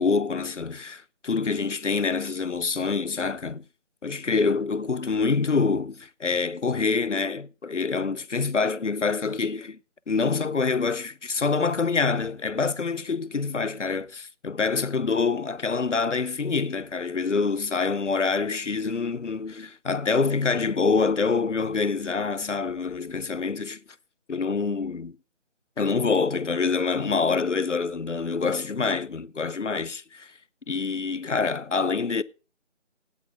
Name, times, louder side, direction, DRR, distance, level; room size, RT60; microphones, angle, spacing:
voice 1, 0.0-3.6 4.0-9.8 10.1-23.8 24.3-25.2 25.8-30.3 30.7-32.2, left 4 dB, 75° left, 0.8 m, -26 dB
17.0 x 6.4 x 4.7 m
figure-of-eight pair, 165°, 37 cm